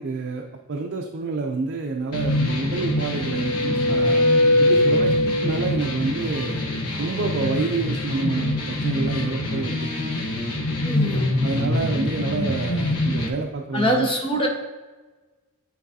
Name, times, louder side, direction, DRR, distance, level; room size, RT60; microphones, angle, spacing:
voice 1, 0.0-4.3 4.6-6.7 7.0-10.2 11.4-14.1, right 3 dB, 50° right, 2 dB, 0.5 m, -28 dB
sound 1, 2.1-13.3, left 2 dB, 85° left, 1.0 m, -26 dB
sound 2, 2.7-5.8, left 1 dB, 45° left, 1.5 m, -20 dB
voice 2, 10.8-11.3 13.7-14.5, equal, 25° left, 0 dB, 1.1 m, -23 dB
9.7 x 4.0 x 2.7 m, 1.2 s
head